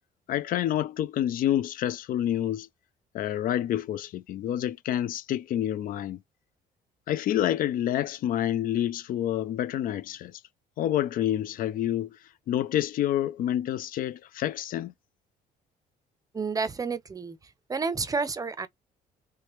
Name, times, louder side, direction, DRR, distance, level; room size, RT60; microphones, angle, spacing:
voice 1, 0.3-2.7 3.1-6.2 7.1-10.4 10.8-12.2 12.5-14.9, left 11 dB, 55° left, 0.4 m, -28 dB
voice 2, 16.3-18.7, right 4 dB, 20° right, 0.5 m, -30 dB
3.2 x 3.2 x 3.0 m
cardioid pair, 110°, 17 cm